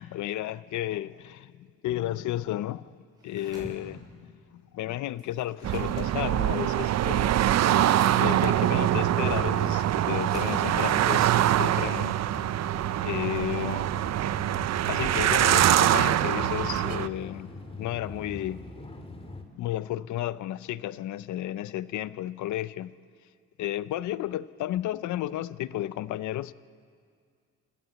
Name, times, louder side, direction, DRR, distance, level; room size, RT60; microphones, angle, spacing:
voice 1, 0.0-2.9 3.2-7.3 8.2-12.2 13.0-13.9 14.9-17.5 17.8-18.7 19.6-22.9 23.6-26.5, left 13 dB, 75° left, 0.6 m, -33 dB
sound 1, 3.2-3.7 5.2-5.9 7.8-8.2 10.2-10.6, right 1 dB, 15° right, 7.3 m, -44 dB
sound 2, 5.6-17.1, right 12 dB, 60° right, 0.6 m, -24 dB
sound 3, 8.8-19.4, left 2 dB, 20° left, 2.2 m, -43 dB
29.5 x 14.5 x 8.1 m
cardioid pair, 90°, 30 cm